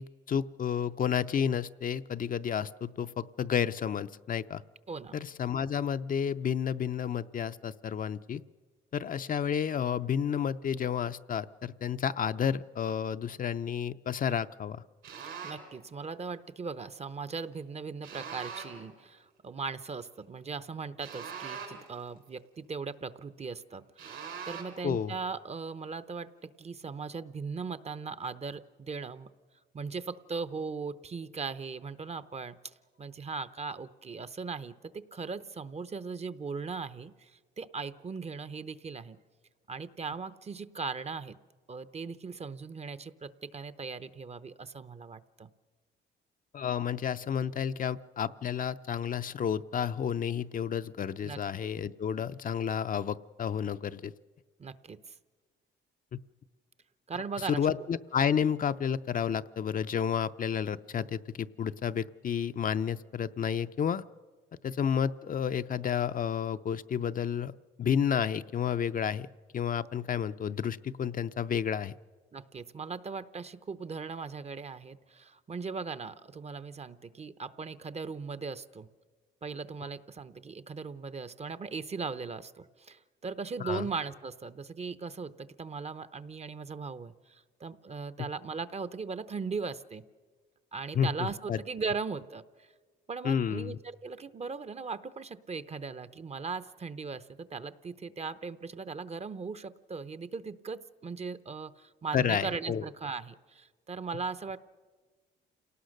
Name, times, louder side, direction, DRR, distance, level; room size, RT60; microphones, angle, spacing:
voice 1, 0.0-4.6 5.1-8.4 8.9-14.8 24.8-25.1 46.5-54.1 56.1-56.2 57.5-64.0 64.6-67.5 67.8-69.3 69.5-71.9 83.6-83.9 90.9-91.6 93.2-93.8 102.1-102.8, left 8 dB, 45° left, 11 dB, 0.6 m, -31 dB
sound 1, 15.0-15.7 18.0-18.9 21.0-22.0 24.0-24.9, right 6 dB, 85° right, 5.3 m, -42 dB
voice 2, 15.4-29.3 29.7-32.6 33.0-39.2 39.7-41.4 41.7-45.5 51.2-51.4 54.6-55.1 57.1-57.6 72.3-78.9 79.4-90.0 90.7-92.7 93.1-104.6, right 5 dB, 30° right, 15 dB, 0.8 m, -39 dB
28.0 x 18.5 x 6.5 m, 1.4 s
cardioid pair, 90°, 20 cm